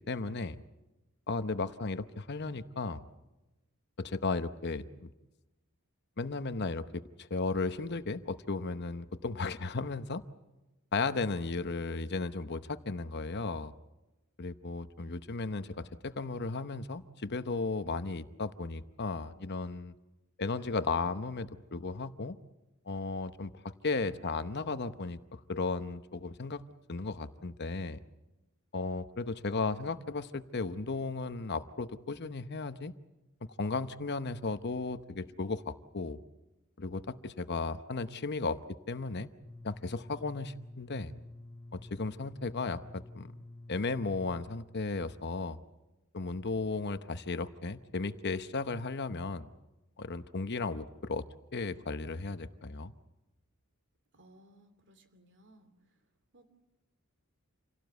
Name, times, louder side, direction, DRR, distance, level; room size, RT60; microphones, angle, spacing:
voice 1, 0.1-0.6 1.3-3.0 4.0-5.1 6.2-10.2 10.9-13.7 14.4-19.9 20.4-22.4 22.9-26.6 26.9-28.0 28.7-32.9 33.6-36.2 36.8-38.6 38.9-39.3 39.6-41.1 41.7-43.3 43.7-45.6 46.1-49.5 50.0-51.2 51.5-52.9, left 3 dB, 50° left, 11 dB, 0.9 m, -35 dB
sound 1, 39.4-44.4, left 2 dB, 10° left, 4.0 m, -49 dB
voice 2, 54.1-56.0 56.3-56.5, right 1 dB, 55° right, 9 dB, 2.9 m, -61 dB
27.5 x 17.5 x 8.1 m, 1.0 s
head